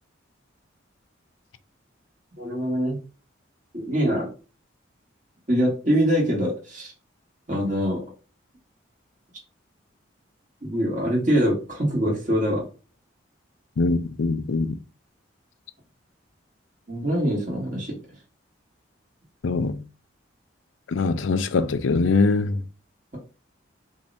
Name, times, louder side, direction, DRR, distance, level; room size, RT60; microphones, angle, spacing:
voice 1, 2.4-3.0 3.7-4.3 5.5-6.9 7.5-8.0 10.6-12.6 16.9-18.0, equal, 40° right, 2.1 m, -24 dB
voice 2, 13.8-14.8 19.4-19.8 20.9-22.6, left 3 dB, 80° left, 0.5 m, -22 dB
5.3 x 2.7 x 3.4 m
head